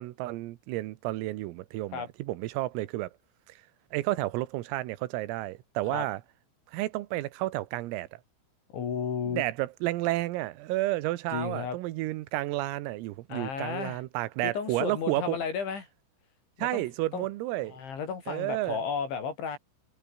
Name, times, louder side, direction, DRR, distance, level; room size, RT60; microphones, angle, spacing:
voice 1, 0.0-3.1 3.9-6.2 6.7-8.1 9.3-15.4 16.6-17.8 18.3-18.8, right 17 dB, 85° right, 3.9 m, -31 dB
voice 2, 8.7-9.4 11.3-11.8 13.3-14.0 14.4-15.9 16.6-16.8 17.1-17.3 17.7-19.6, left 6 dB, 65° left, 6.3 m, -33 dB
omnidirectional pair, 5.9 m